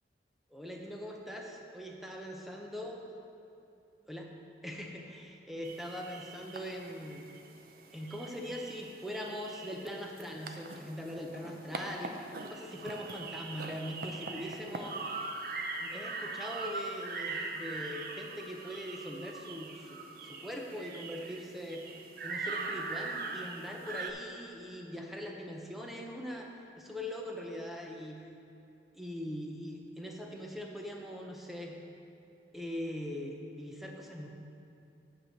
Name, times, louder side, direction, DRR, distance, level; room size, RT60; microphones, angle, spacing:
voice 1, 0.5-3.0 4.1-4.3 4.6-7.2 7.9-15.0 15.8-21.8 22.2-26.5 26.8-28.2 28.9-31.8 32.5-34.3, equal, ahead, 0 dB, 0.6 m, -41 dB
sound 1, 5.6-24.1, right 3 dB, 55° right, 0.5 m, -41 dB
8.8 x 4.8 x 6.5 m, 2.7 s
head